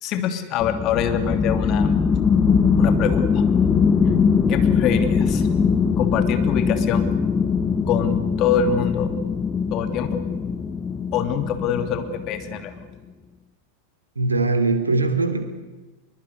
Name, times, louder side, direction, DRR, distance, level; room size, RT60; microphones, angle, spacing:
voice 1, 0.0-1.9 2.8-3.4 4.5-5.5 6.0-7.0 7.9-9.1 9.7-10.2 11.1-12.7, left 8 dB, 35° left, 8 dB, 2.8 m, -25 dB
sound 1, 0.6-12.7, left 6 dB, 20° left, 1.6 m, -21 dB
voice 2, 14.1-15.4, right 3 dB, 80° right, 7 dB, 3.1 m, -21 dB
24.0 x 22.0 x 9.7 m, 1.2 s
figure-of-eight pair, 90°, 0 cm